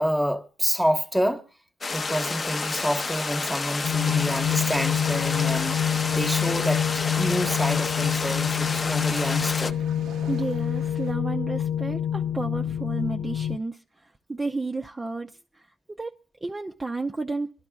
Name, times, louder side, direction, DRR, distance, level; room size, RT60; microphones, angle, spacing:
voice 1, 0.0-1.4 1.9-5.8 6.1-9.8, equal, ahead, 1.1 m, -28 dB
sound 1, 1.8-9.7, left 4 dB, 35° left, 0.6 m, -30 dB
sound 2, 3.8-13.6, left 9 dB, 75° left, 0.5 m, -27 dB
sound 3, 4.9-11.1, right 8 dB, 85° right, 0.7 m, -47 dB
voice 2, 10.3-17.7, right 3 dB, 20° right, 0.6 m, -32 dB
24.5 x 12.0 x 2.3 m
cardioid pair, 90°, 0 cm